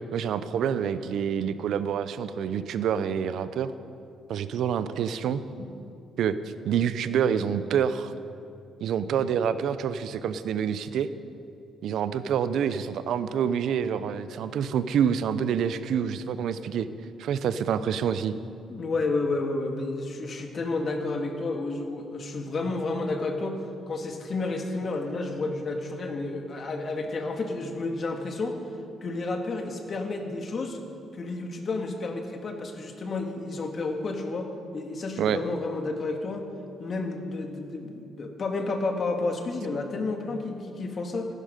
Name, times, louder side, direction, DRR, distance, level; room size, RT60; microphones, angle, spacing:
voice 1, 0.1-3.7 4.3-5.4 6.2-6.4 6.6-8.1 8.8-11.1 11.8-16.9 17.2-18.3 35.2-35.4, right 8 dB, 75° right, 13 dB, 0.6 m, -27 dB
voice 2, 18.7-23.6 23.9-28.5 29.0-30.8 31.1-36.5 36.8-41.3, left 3 dB, 45° left, 4 dB, 1.8 m, -31 dB
15.5 x 12.0 x 5.2 m, 2.6 s
cardioid pair, 90°, 0 cm